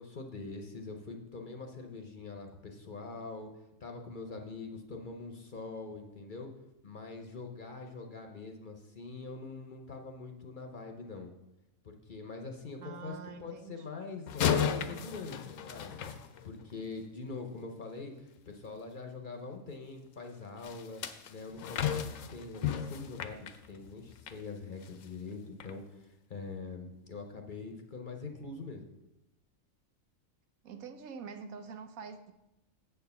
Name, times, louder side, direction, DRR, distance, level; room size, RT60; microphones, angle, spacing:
voice 1, 0.0-3.5 3.8-6.5 6.8-11.3 11.8-16.0 16.4-21.0 21.3-29.0, left 3 dB, 45° left, 3 dB, 0.8 m, -44 dB
voice 2, 12.8-14.0 30.6-32.3, right 5 dB, 85° right, 8 dB, 1.2 m, -46 dB
sound 1, 14.3-16.9 20.6-24.4 24.8-25.1 25.6-25.7, left 8 dB, 70° left, 1.0 m, -34 dB
8.1 x 4.5 x 6.8 m, 0.94 s
omnidirectional pair, 1.4 m